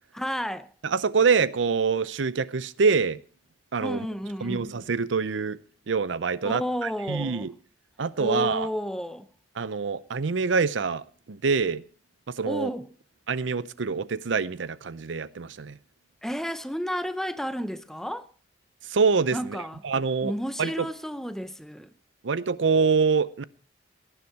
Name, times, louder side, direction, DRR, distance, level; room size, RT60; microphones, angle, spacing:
voice 1, 0.1-0.7 3.8-4.7 6.4-7.5 8.2-9.3 12.5-12.9 16.2-18.3 19.3-19.8 20.2-21.9, equal, ahead, 0.7 m, -31 dB
voice 2, 0.8-3.2 3.7-4.1 4.4-5.6 5.9-7.5 8.0-8.7 9.6-11.8 12.3-12.7 13.3-15.8 18.9-19.6 19.8-20.3 20.6-20.9 22.2-23.4, right 5 dB, 85° right, 0.6 m, -25 dB
18.0 x 10.0 x 4.7 m
head